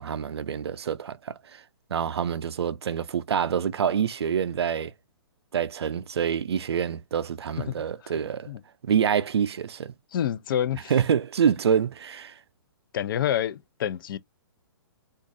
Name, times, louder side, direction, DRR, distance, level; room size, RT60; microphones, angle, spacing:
voice 1, 0.0-1.6 1.9-4.9 5.5-8.5 8.8-9.9 10.9-12.3, right 8 dB, 85° right, 0.4 m, -26 dB
voice 2, 7.6-8.1 8.5-8.6 10.1-10.9 12.9-14.2, left 10 dB, 55° left, 0.5 m, -28 dB
3.9 x 2.4 x 2.6 m
hypercardioid pair, 140°, 13 cm